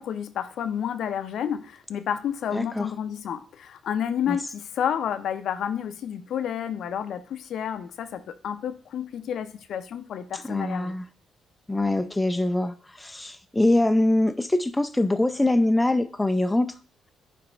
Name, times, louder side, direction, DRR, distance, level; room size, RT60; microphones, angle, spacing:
voice 1, 0.0-10.9, left 9 dB, 70° left, 0.6 m, -30 dB
voice 2, 2.5-2.9 4.3-4.4 10.4-11.0 11.7-16.7, left 1 dB, 10° left, 0.5 m, -23 dB
9.1 x 3.4 x 4.4 m
cardioid pair, 90°, 0 cm